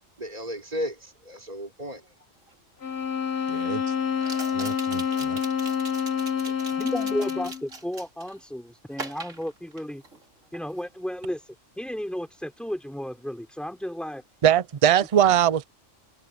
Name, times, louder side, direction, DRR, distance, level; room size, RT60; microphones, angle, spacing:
voice 1, 0.2-2.0 3.9-4.1 5.1-5.3 5.8-7.2, equal, 30° right, 3.4 m, -37 dB
sound 1, 2.5-2.6 4.2-8.4 8.9-10.2 10.5-10.9, right 3 dB, 80° right, 3.7 m, -41 dB
sound 2, 2.8-7.7, left 7 dB, 55° left, 1.6 m, -27 dB
voice 2, 3.5-3.8 4.5-5.4 14.4-15.6, right 10 dB, 50° right, 0.4 m, -22 dB
voice 3, 6.8-10.0 10.5-11.4 11.8-14.2, equal, ahead, 4.4 m, -33 dB
omnidirectional pair, 1.3 m